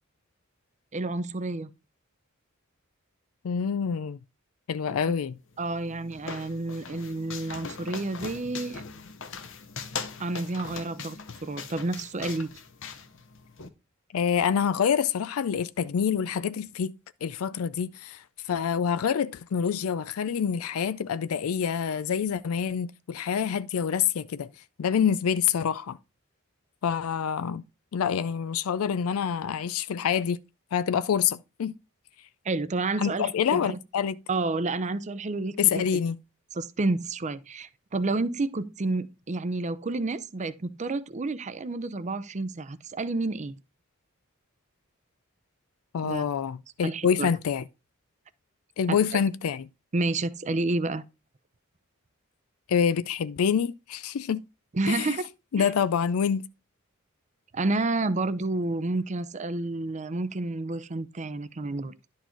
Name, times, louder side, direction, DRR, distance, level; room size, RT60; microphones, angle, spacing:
voice 1, 0.9-1.7 4.9-5.0 5.6-8.8 10.2-12.5 32.4-33.8 34.3-35.9 36.6-43.5 46.0-46.2 46.8-47.3 48.9-49.2 49.9-51.0 54.7-55.3 55.6-55.7 57.5-61.9, right 2 dB, 35° right, 0.6 m, -30 dB
voice 2, 3.4-4.2 4.7-5.4 14.1-16.9 17.2-24.5 24.8-26.0 26.8-27.6 27.9-30.4 30.7-31.7 33.0-34.2 35.6-36.2 45.9-47.6 48.8-49.7 52.7-54.4 54.9-55.1 55.5-56.4, left 7 dB, 85° left, 0.4 m, -26 dB
sound 1, 5.5-13.7, left 5 dB, 65° left, 1.0 m, -40 dB
11.0 x 4.7 x 4.4 m
head